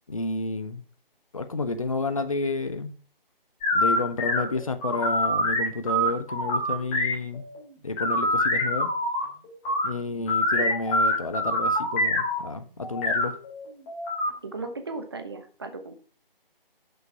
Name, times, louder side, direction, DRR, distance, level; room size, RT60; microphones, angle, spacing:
voice 1, 0.1-0.8 1.3-2.9 3.7-7.5 7.8-8.9 9.8-13.4, left 3 dB, 35° left, 1.0 m, -30 dB
sound 1, 3.6-7.6 8.0-9.9 10.3-12.4 12.8-14.3, left 1 dB, 10° left, 3.2 m, -25 dB
voice 2, 14.4-15.9, right 3 dB, 25° right, 1.1 m, -36 dB
10.5 x 6.9 x 5.8 m
figure-of-eight pair, 155°, 29 cm